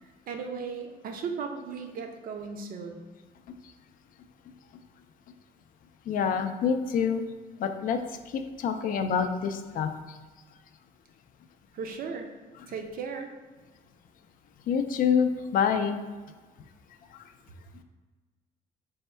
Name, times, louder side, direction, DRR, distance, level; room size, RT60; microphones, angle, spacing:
voice 1, 0.0-3.0 11.7-12.3 12.7-13.3, right 5 dB, 55° right, 4 dB, 0.5 m, -36 dB
voice 2, 6.1-7.2 7.6-8.0 8.3-10.2 14.7-16.0 17.1-17.3, left 7 dB, 55° left, 7 dB, 0.4 m, -27 dB
3.5 x 2.2 x 4.3 m, 1.3 s
cardioid pair, 110°, 17 cm